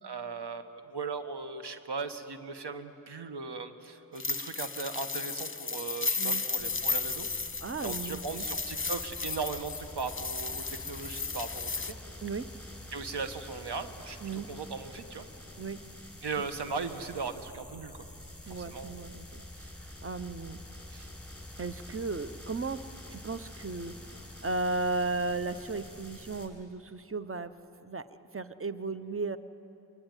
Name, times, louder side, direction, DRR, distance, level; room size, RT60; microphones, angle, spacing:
voice 1, 0.0-7.3 7.8-12.0 12.9-15.2 16.2-18.1 18.5-19.0 20.9-21.1, right 4 dB, 80° right, 8 dB, 1.5 m, -38 dB
sound 1, 4.2-11.9, left 4 dB, 30° left, 1.1 m, -34 dB
sound 2, 6.6-26.5, left 1 dB, ahead, 7.4 m, -47 dB
voice 2, 7.6-8.4 12.2-12.5 14.2-14.5 15.6-15.8 18.5-20.6 21.6-22.8 23.1-27.5 27.8-29.4, right 3 dB, 35° right, 12 dB, 1.0 m, -35 dB
24.0 x 22.0 x 9.3 m, 3.0 s
cardioid pair, 45°, 40 cm